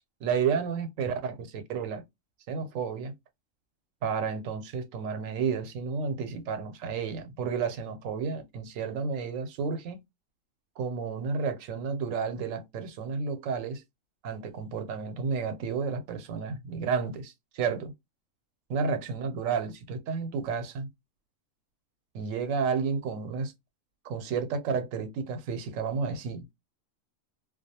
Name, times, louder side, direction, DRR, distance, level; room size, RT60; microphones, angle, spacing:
voice 1, 0.2-2.0 2.5-3.1 4.0-10.0 10.8-13.8 14.2-17.9 18.7-20.9 22.1-23.5 24.0-26.4, right 5 dB, 90° right, 1.0 m, -31 dB
2.3 x 2.2 x 2.7 m
omnidirectional pair, 1.3 m